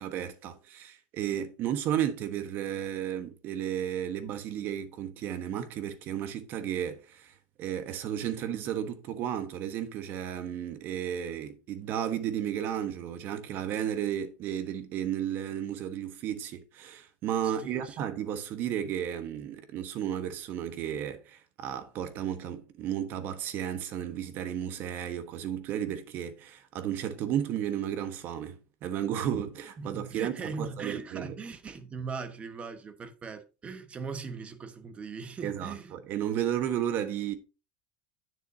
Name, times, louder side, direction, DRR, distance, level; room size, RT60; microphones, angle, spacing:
voice 1, 0.0-7.3 7.6-31.3 35.4-37.4, right 10 dB, 50° right, 1.3 m, -33 dB
voice 2, 17.4-18.0 29.8-35.9, right 4 dB, 30° right, 1.3 m, -40 dB
10.0 x 7.3 x 2.7 m
supercardioid pair, 110°, 4 cm